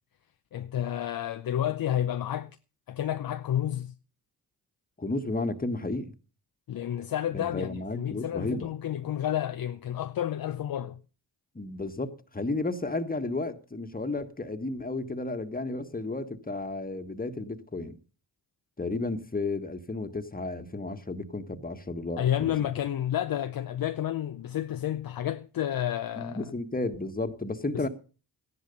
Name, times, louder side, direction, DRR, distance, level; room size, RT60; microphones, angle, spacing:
voice 1, 0.5-2.5 2.9-3.9 6.7-11.0 22.2-26.5 27.7-27.9, left 11 dB, 55° left, 0.7 m, -30 dB
voice 2, 5.0-6.1 7.3-8.7 11.5-18.0 18.8-22.5 26.2-27.9, left 2 dB, 20° left, 1.6 m, -33 dB
13.5 x 10.5 x 5.4 m
supercardioid pair, 45°, 41 cm